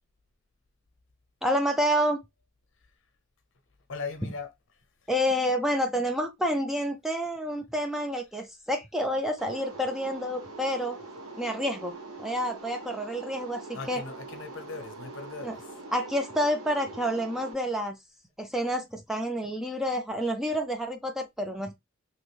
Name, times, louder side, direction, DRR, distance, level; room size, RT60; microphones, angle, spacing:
voice 1, 1.4-2.2 5.1-11.0 11.4-11.9 12.2-14.0 15.4-15.6 15.9-18.0 18.4-21.7, equal, ahead, 0.4 m, -29 dB
voice 2, 3.9-4.5 13.7-15.6, left 4 dB, 60° left, 0.7 m, -38 dB
sound 1, 9.4-17.5, right 2 dB, 85° right, 1.1 m, -43 dB
3.0 x 2.4 x 3.2 m
head